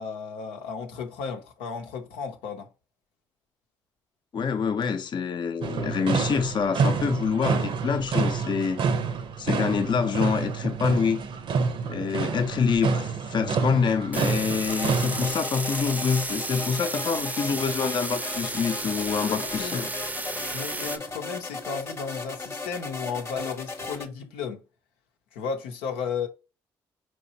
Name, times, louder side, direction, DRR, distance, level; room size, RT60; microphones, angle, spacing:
voice 1, 0.0-2.7 19.1-19.8 20.5-24.6 25.3-26.3, left 6 dB, 90° left, 0.7 m, -34 dB
voice 2, 4.3-8.8 9.4-11.2 11.9-19.9, left 6 dB, 50° left, 0.6 m, -26 dB
sound 1, 5.6-15.3, right 5 dB, 60° right, 0.7 m, -28 dB
sound 2, 14.1-21.0, right 2 dB, 15° right, 0.5 m, -33 dB
sound 3, 14.7-24.1, left 3 dB, 25° left, 0.9 m, -37 dB
4.6 x 3.2 x 2.7 m
supercardioid pair, 55°, 10 cm